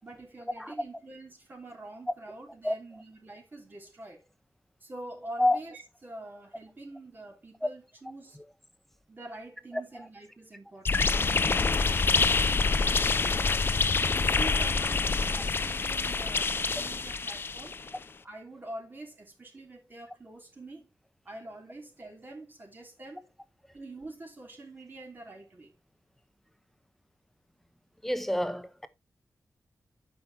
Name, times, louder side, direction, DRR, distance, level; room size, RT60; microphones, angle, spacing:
voice 1, 0.0-4.3 4.8-8.4 9.1-13.6 14.1-17.8 18.2-20.9 21.2-23.3 23.7-25.7, right 2 dB, 35° right, 3.1 m, -45 dB
sound 1, 10.8-17.9, left 4 dB, 40° left, 0.6 m, -26 dB
voice 2, 28.0-28.9, left 1 dB, 5° left, 0.9 m, -28 dB
12.5 x 6.2 x 2.8 m
wide cardioid pair, 165°, 6 cm